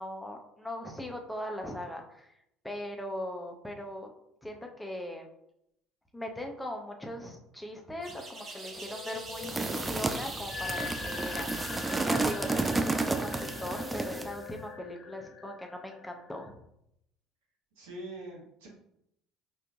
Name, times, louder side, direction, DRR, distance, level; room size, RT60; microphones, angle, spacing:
voice 1, 0.0-2.3 2.6-4.1 4.4-5.3 6.1-16.6, left 1 dB, 5° left, 2 dB, 0.7 m, -40 dB
sound 1, 8.0-14.4, right 2 dB, 45° right, 1.0 m, -45 dB
sound 2, 8.2-16.5, left 7 dB, 55° left, 0.5 m, -44 dB
sound 3, 9.3-14.4, right 3 dB, 15° right, 0.3 m, -31 dB
voice 2, 17.8-18.7, right 1 dB, 80° right, -2 dB, 1.1 m, -43 dB
4.4 x 2.5 x 2.4 m, 0.77 s
hypercardioid pair, 70°, 0 cm